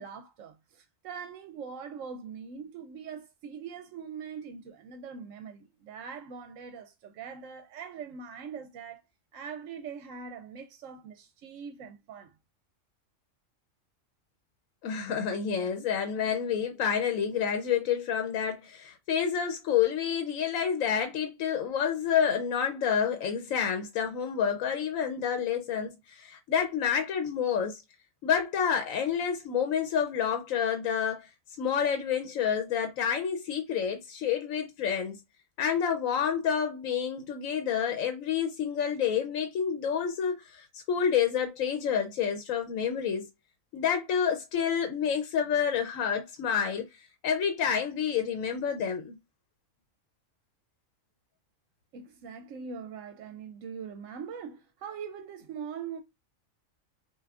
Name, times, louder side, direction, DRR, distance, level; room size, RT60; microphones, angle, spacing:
voice 1, 0.0-9.0 9.3-12.3 51.9-56.0, right 6 dB, 75° right, 1.0 m, -42 dB
voice 2, 14.8-27.8 28.2-31.3 31.6-35.2 35.6-43.3 43.7-49.1, left 8 dB, 90° left, 1.0 m, -29 dB
5.7 x 2.6 x 2.4 m
omnidirectional pair, 1.4 m